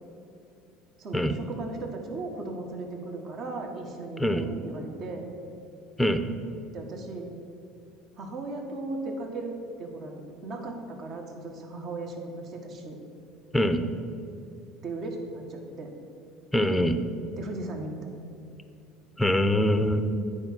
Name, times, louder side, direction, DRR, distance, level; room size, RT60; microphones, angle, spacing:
voice 1, 1.0-5.3 6.7-7.3 8.1-13.0 14.8-15.9 17.4-18.1, right 2 dB, 50° right, 2 dB, 1.4 m, -37 dB
voice 2, 16.5-17.0 19.2-20.0, equal, 5° left, 9 dB, 0.6 m, -23 dB
9.7 x 4.8 x 6.0 m, 2.6 s
supercardioid pair, 105°, 0 cm